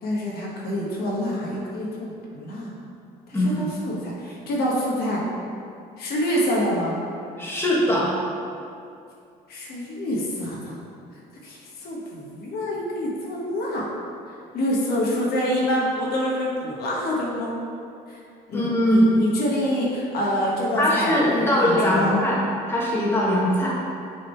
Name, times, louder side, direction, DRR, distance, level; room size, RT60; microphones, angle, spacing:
voice 1, 0.0-2.7 3.3-5.2 6.0-7.0 9.5-10.7 11.4-13.8 14.3-17.5 18.1-18.2 18.5-22.2, equal, 70° left, -4 dB, 1.3 m, -26 dB
voice 2, 3.3-3.7 7.4-8.1 18.5-19.2 20.8-22.4 22.7-23.7, left 1 dB, 15° left, -6 dB, 1.4 m, -21 dB
6.5 x 3.8 x 4.5 m, 2.5 s
cardioid pair, 110°, 17 cm